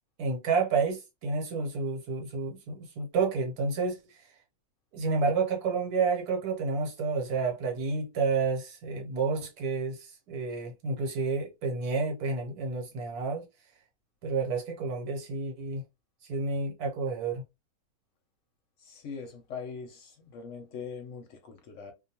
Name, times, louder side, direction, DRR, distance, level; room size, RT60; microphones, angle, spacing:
voice 1, 0.2-4.0 4.9-13.4 14.2-15.8 16.3-17.4, right 4 dB, 80° right, 1.4 m, -30 dB
voice 2, 18.8-21.9, left 5 dB, 65° left, 0.8 m, -42 dB
2.6 x 2.2 x 2.7 m
omnidirectional pair, 1.6 m